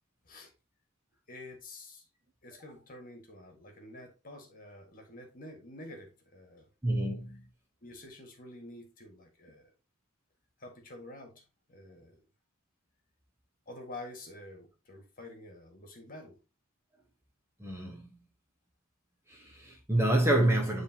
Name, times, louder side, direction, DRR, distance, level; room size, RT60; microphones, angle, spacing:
voice 1, 1.3-2.0 2.4-6.7 7.8-9.7 10.6-11.4 11.7-12.2 13.7-16.4, left 1 dB, 40° left, 1.8 m, -48 dB
voice 2, 6.8-7.4 17.6-18.1 19.3-20.8, right 1 dB, 10° right, 1.1 m, -28 dB
10.0 x 3.5 x 2.9 m
head